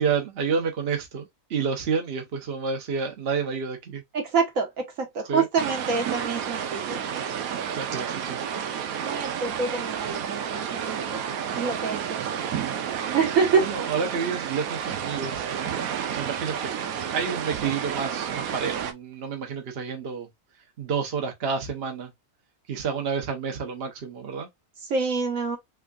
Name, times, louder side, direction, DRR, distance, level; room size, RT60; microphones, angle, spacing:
voice 1, 0.0-4.0 5.3-5.5 7.8-8.4 13.6-15.5 16.2-16.7 17.1-20.3 20.8-22.1 22.7-24.5, right 5 dB, 50° right, 1.0 m, -29 dB
voice 2, 4.1-7.0 9.0-11.2 11.6-12.4 13.1-13.6 24.9-25.6, right 5 dB, 65° right, 1.4 m, -26 dB
sound 1, 5.6-18.9, right 8 dB, 85° right, 1.1 m, -31 dB
3.6 x 3.5 x 2.3 m
omnidirectional pair, 1.5 m